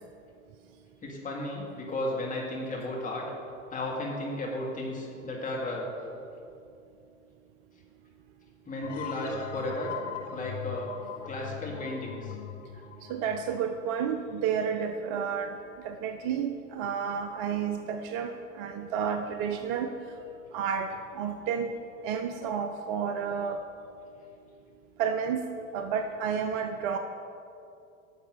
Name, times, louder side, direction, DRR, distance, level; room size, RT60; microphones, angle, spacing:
voice 1, 1.0-3.2 3.7-5.9 8.7-9.9 10.3-10.9 11.3-12.4, left 1 dB, 20° left, -2 dB, 2.2 m, -34 dB
sound 1, 8.8-14.3, left 9 dB, 70° left, 0.7 m, -41 dB
voice 2, 13.1-15.5 15.8-19.9 20.5-21.8 22.0-23.6 25.0-25.5 25.7-27.0, right 7 dB, 45° right, 7 dB, 0.6 m, -31 dB
11.0 x 6.9 x 5.3 m, 2.5 s
figure-of-eight pair, 75°, 38 cm